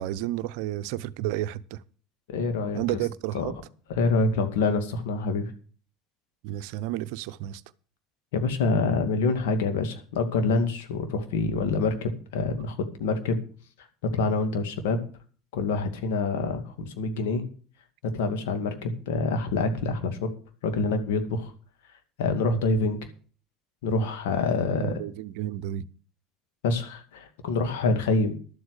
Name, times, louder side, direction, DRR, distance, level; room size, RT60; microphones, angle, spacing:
voice 1, 0.0-1.8 2.7-3.5 6.4-7.6 24.7-25.8, right 14 dB, 70° right, 0.6 m, -31 dB
voice 2, 2.3-2.8 3.3-3.5 3.9-5.5 8.3-13.4 14.0-15.0 15.5-17.4 18.0-20.3 20.6-21.5 22.2-23.0 23.8-25.0 26.6-28.4, left 3 dB, 75° left, 2.2 m, -26 dB
12.0 x 7.9 x 6.6 m
hypercardioid pair, 70°, 0 cm